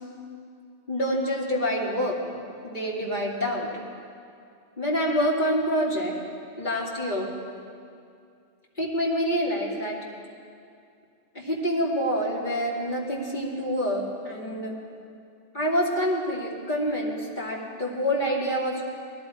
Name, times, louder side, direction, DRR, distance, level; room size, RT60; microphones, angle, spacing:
voice 1, 0.9-2.2 2.6-3.7 4.8-6.1 6.6-7.3 8.8-10.0 11.3-14.8 15.5-18.8, equal, 40° left, -4 dB, 2.5 m, -27 dB
19.5 x 14.0 x 4.9 m, 2.4 s
omnidirectional pair, 1.2 m